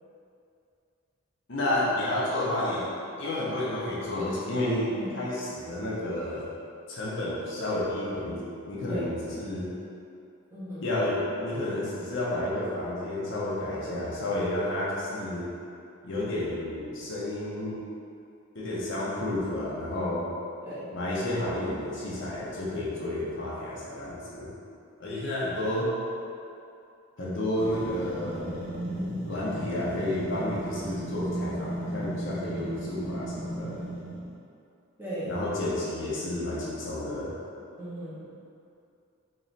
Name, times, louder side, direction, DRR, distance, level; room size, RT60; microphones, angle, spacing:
voice 1, 1.5-2.9 3.2-6.5 6.9-9.6 10.8-15.5 16.0-17.8 18.5-20.2 20.9-24.5 25.0-25.9 27.2-28.6 29.2-33.8 35.2-37.3, left 1 dB, 60° left, -7 dB, 0.8 m, -31 dB
voice 2, 10.5-10.9 20.6-20.8 28.8-29.2 35.0-35.3 37.8-38.2, equal, 10° right, -11 dB, 1.0 m, -37 dB
sound 1, 27.6-34.4, right 1 dB, 45° right, 0.7 m, -35 dB
3.1 x 3.1 x 4.0 m, 2.6 s
head